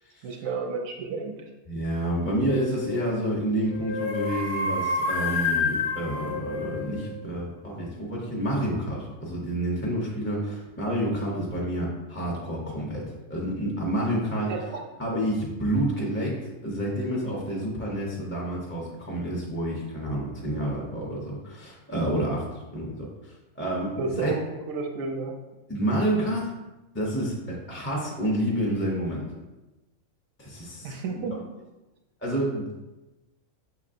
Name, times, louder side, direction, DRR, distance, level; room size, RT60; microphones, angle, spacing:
voice 1, 0.2-1.3 14.5-14.8 24.0-25.4 30.8-31.4, right 4 dB, 80° right, 2 dB, 1.0 m, -31 dB
voice 2, 1.7-14.5 15.0-22.5 22.7-24.3 25.7-26.5 26.9-29.3 30.4-30.9 32.2-32.7, right 1 dB, 15° left, -4 dB, 0.5 m, -29 dB
sound 1, 2.5-2.9 3.7-7.1, left 3 dB, 60° left, 0.9 m, -29 dB
5.8 x 3.0 x 2.5 m, 1.0 s
omnidirectional pair, 1.4 m